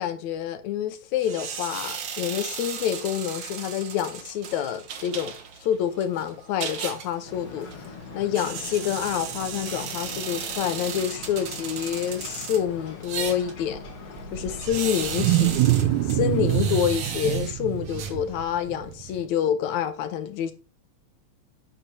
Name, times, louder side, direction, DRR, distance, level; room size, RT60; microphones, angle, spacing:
voice 1, 0.0-5.3 5.6-7.7 8.1-13.8 14.3-20.5, left 9 dB, 80° left, 2.3 m, -27 dB
sound 1, 1.2-18.7, right 7 dB, 55° right, 1.4 m, -36 dB
Ocean, 7.2-16.8, left 4 dB, 50° left, 1.7 m, -42 dB
Wild animals, 14.2-19.2, right 13 dB, 90° right, 2.1 m, -25 dB
10.0 x 8.4 x 2.8 m
omnidirectional pair, 3.3 m